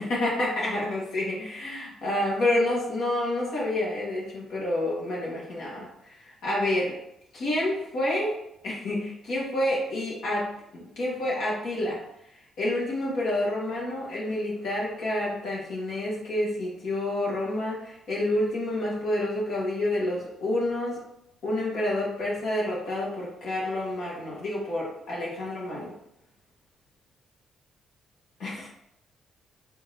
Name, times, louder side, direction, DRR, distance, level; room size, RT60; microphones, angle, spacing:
voice 1, 0.0-5.9 6.2-7.0 7.3-8.4 8.6-12.0 12.6-21.0 21.4-25.9 28.4-28.7, left 1 dB, 75° left, -5 dB, 1.4 m, -28 dB
3.8 x 3.7 x 2.7 m, 0.78 s
cardioid pair, 90°, 0 cm